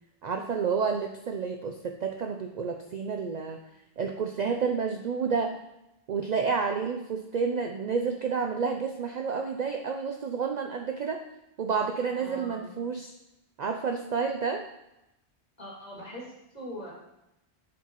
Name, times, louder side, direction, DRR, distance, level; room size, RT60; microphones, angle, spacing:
voice 1, 0.2-3.6 4.0-5.6 6.1-11.2 11.6-13.1 13.6-14.7, right 5 dB, 55° right, 4 dB, 0.5 m, -30 dB
voice 2, 12.1-12.7 15.6-16.9, equal, 40° left, -5 dB, 2.4 m, -42 dB
10.5 x 4.6 x 3.0 m, 0.90 s
omnidirectional pair, 1.1 m